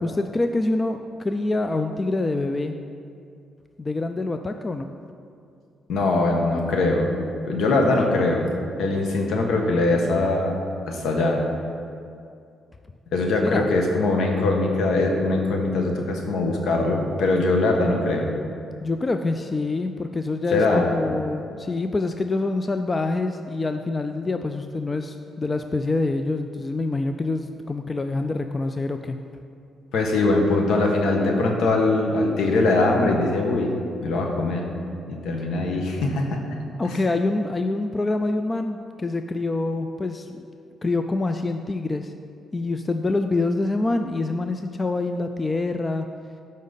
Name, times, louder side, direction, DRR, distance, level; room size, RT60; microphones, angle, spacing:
voice 1, 0.0-2.7 3.8-4.9 13.4-13.7 18.8-29.2 36.8-40.5 40.8-42.1 42.5-46.1, left 2 dB, 25° left, 7 dB, 0.4 m, -26 dB
voice 2, 5.9-7.1 7.4-8.5 8.8-10.6 10.9-11.4 13.1-18.3 20.5-20.8 29.9-33.7 34.0-34.7 35.1-36.4 36.8-36.9, left 2 dB, 75° left, 1 dB, 1.3 m, -22 dB
12.5 x 5.2 x 4.0 m, 2.4 s
cardioid pair, 90°, 0 cm